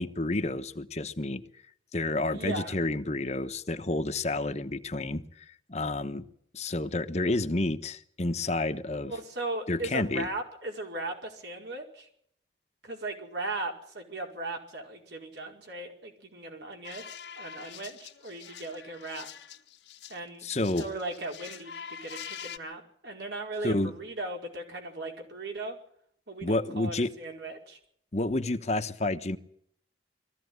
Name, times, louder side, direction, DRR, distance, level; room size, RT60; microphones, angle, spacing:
voice 1, 0.0-1.4 1.9-6.2 6.5-9.1 9.7-10.3 20.4-20.9 23.6-23.9 26.4-27.1 28.1-29.4, left 2 dB, 40° left, 8 dB, 1.1 m, -30 dB
voice 2, 2.3-2.7 9.0-12.1 12.8-17.1 17.4-19.3 20.1-20.5 20.8-25.8 26.3-27.8, right 2 dB, 75° right, 1 dB, 5.0 m, -37 dB
sound 1, 16.8-20.2 20.5-22.6, left 8 dB, 85° left, 1.7 m, -45 dB
21.5 x 15.0 x 9.5 m, 0.69 s
head